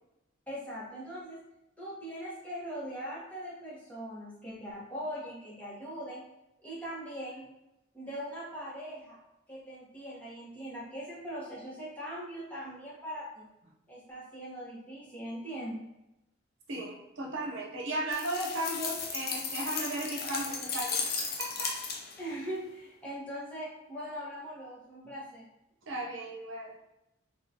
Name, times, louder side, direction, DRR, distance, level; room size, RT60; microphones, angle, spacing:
voice 1, 0.5-1.4 1.8-6.2 6.6-7.4 7.9-9.2 9.5-13.5 13.9-15.9 22.2-25.5, equal, 10° left, -8 dB, 1.0 m, -41 dB
voice 2, 16.7-21.8 25.8-26.8, right 1 dB, 80° right, -1 dB, 0.8 m, -36 dB
sound 1, 18.1-22.3, left 5 dB, 50° left, 0.5 m, -35 dB
3.6 x 2.3 x 2.8 m, 0.91 s
head